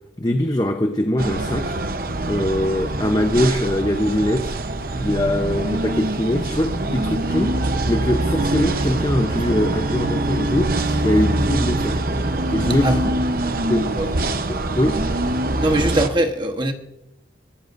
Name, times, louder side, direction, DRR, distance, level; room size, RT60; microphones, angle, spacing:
voice 1, 0.2-1.8 2.3-4.5 5.0-7.5 7.9-12.0 12.5-13.1 13.7-13.9 14.5-15.0, left 1 dB, 20° left, 0.8 m, -22 dB
sound 1, 1.2-16.1, right 2 dB, 50° right, 0.9 m, -23 dB
voice 2, 15.6-16.7, right 1 dB, 25° right, 1.2 m, -21 dB
23.5 x 13.5 x 2.6 m
head